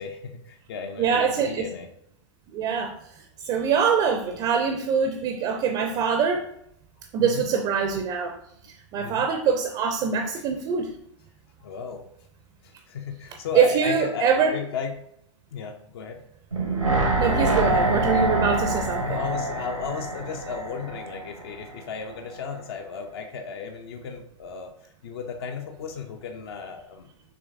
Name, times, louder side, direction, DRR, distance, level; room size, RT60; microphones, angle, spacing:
voice 1, 0.0-1.9 7.2-7.5 9.0-9.3 10.4-10.5 11.6-12.1 12.6-15.0 15.5-16.2 18.8-27.1, left 6 dB, 50° left, 5 dB, 0.6 m, -35 dB
voice 2, 1.0-1.7 2.5-2.9 3.4-6.4 7.1-8.4 8.9-10.9 13.6-14.5 17.2-19.2, right 6 dB, 25° right, 5 dB, 0.5 m, -23 dB
sound 1, 16.5-21.7 22.0-22.1, right 2 dB, 90° right, 1.1 m, -25 dB
6.1 x 3.3 x 2.5 m, 0.73 s
figure-of-eight pair, 105°, 16 cm